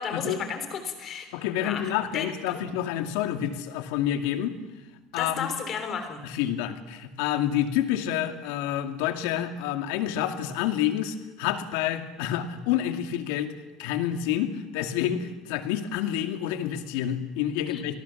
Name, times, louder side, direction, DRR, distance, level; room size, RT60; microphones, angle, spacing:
voice 1, 0.0-2.6 5.1-6.2 17.7-17.8, left 6 dB, 30° left, 7 dB, 3.4 m, -34 dB
voice 2, 1.3-4.5 5.1-5.5 6.2-13.5 13.8-18.0, left 11 dB, 80° left, 7 dB, 2.2 m, -28 dB
26.0 x 19.0 x 7.2 m, 1.2 s
cardioid pair, 175°, 0 cm